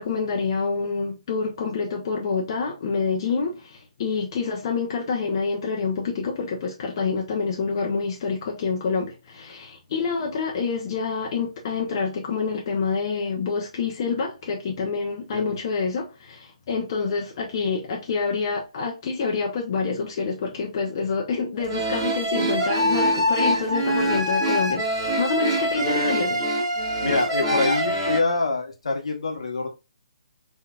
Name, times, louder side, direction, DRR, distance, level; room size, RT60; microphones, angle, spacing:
voice 1, 0.0-26.5, left 5 dB, 40° left, 0.8 m, -27 dB
sound 1, 21.6-28.2, equal, 30° right, 1.5 m, -24 dB
voice 2, 27.0-29.7, left 3 dB, 65° left, 1.0 m, -25 dB
3.7 x 3.1 x 2.3 m
figure-of-eight pair, 140°, 3 cm